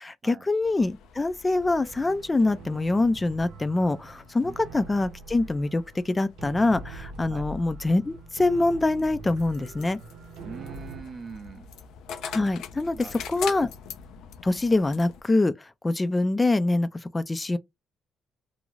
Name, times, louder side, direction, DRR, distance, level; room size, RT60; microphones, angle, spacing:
voice 1, 0.0-10.0 12.2-13.7 14.4-17.6, left 2 dB, 20° left, 0.3 m, -25 dB
sound 1, 0.6-15.2, left 7 dB, 85° left, 0.4 m, -44 dB
sound 2, 1.6-11.0, right 3 dB, 85° right, 0.7 m, -43 dB
voice 2, 10.4-11.7 12.9-13.1 13.5-13.6, right 5 dB, 45° right, 0.4 m, -42 dB
2.5 x 2.3 x 3.0 m
cardioid pair, 90°, 0 cm